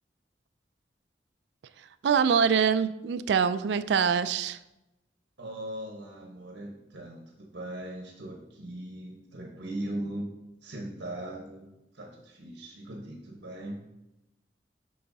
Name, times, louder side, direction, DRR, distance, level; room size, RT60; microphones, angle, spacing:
voice 1, 2.0-4.6, right 6 dB, 75° right, 13 dB, 0.3 m, -24 dB
voice 2, 5.4-10.3 10.6-11.7 11.9-13.9, right 1 dB, 90° right, 0 dB, 1.1 m, -39 dB
8.5 x 5.5 x 2.7 m, 0.94 s
head